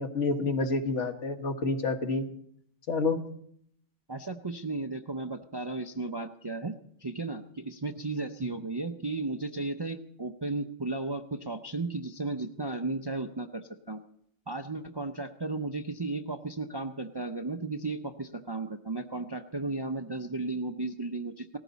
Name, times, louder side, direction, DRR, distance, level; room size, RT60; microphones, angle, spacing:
voice 1, 0.0-2.3 2.9-3.2, left 3 dB, 70° left, 6 dB, 1.5 m, -28 dB
voice 2, 4.1-6.7 7.0-14.0 14.5-21.6, right 3 dB, 30° right, 6 dB, 0.4 m, -34 dB
19.0 x 15.0 x 4.0 m, 0.69 s
omnidirectional pair, 1.3 m